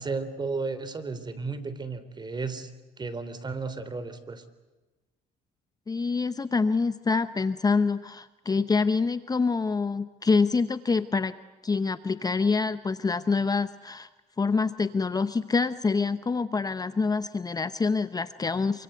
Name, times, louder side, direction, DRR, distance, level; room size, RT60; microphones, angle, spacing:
voice 1, 0.0-2.7 3.0-4.4, right 4 dB, 25° right, 13 dB, 3.4 m, -33 dB
voice 2, 5.9-11.3 11.6-14.1 14.4-18.8, left 4 dB, 20° left, 12 dB, 0.9 m, -26 dB
27.5 x 25.0 x 8.0 m, 1.1 s
cardioid pair, 110°, 17 cm